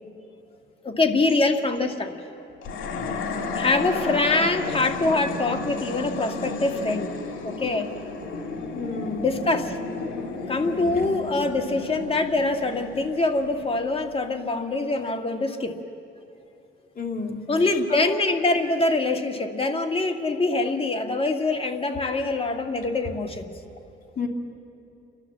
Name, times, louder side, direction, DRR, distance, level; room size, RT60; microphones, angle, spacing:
voice 1, 0.8-2.1 3.6-7.1 7.4-7.9 9.2-9.8 10.5-15.7 17.5-23.5, left 2 dB, 30° left, 5 dB, 1.8 m, -24 dB
sound 1, 2.6-14.0, left 3 dB, 80° left, 2.4 m, -33 dB
voice 2, 8.7-9.2 17.0-17.5 17.9-18.1 22.0-22.1 24.2-24.3, left 4 dB, 45° left, 1 dB, 2.7 m, -31 dB
29.5 x 12.0 x 7.4 m, 2.8 s
cardioid pair, 90°, 20 cm